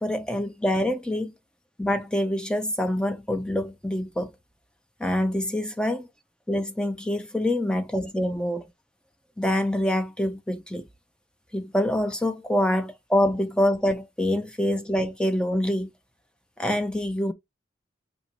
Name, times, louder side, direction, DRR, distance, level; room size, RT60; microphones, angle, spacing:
voice 1, 0.0-1.3 1.8-4.3 5.0-6.1 6.5-8.6 9.4-10.9 11.5-15.9 16.6-17.3, left 1 dB, 5° left, 0.4 m, -25 dB
5.3 x 2.9 x 3.0 m
head